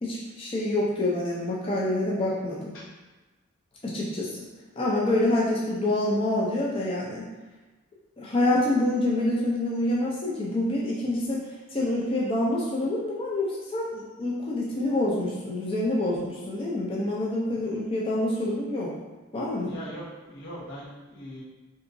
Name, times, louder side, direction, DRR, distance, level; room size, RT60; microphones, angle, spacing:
voice 1, 0.0-2.7 3.8-4.5 4.8-7.3 8.2-11.4 11.7-18.9 19.3-19.7, left 1 dB, 25° left, -5 dB, 0.4 m, -27 dB
voice 2, 19.7-21.4, equal, 85° left, -7 dB, 1.1 m, -40 dB
3.4 x 2.8 x 2.5 m, 1.2 s
head